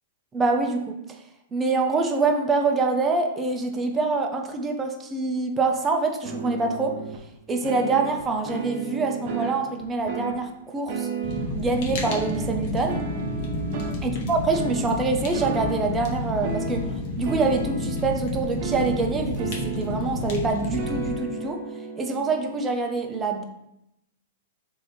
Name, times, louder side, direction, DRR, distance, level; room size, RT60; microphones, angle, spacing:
voice 1, 0.3-1.0 1.5-7.0 7.5-11.1 11.5-13.1 14.0-16.9 17.2-21.6 22.0-23.4, right 3 dB, 20° right, 3 dB, 0.6 m, -25 dB
sound 1, 6.2-7.2 7.6-10.4 10.9-11.6 12.0-14.0 14.3-14.9 15.3-16.0 16.4-18.1 18.6-20.2 20.6-22.7, right 5 dB, 50° right, 0.7 m, -33 dB
Fire, 11.2-21.1, left 1 dB, 55° left, 0.9 m, -30 dB
3.2 x 2.8 x 4.0 m, 0.83 s
hypercardioid pair, 115°, 0 cm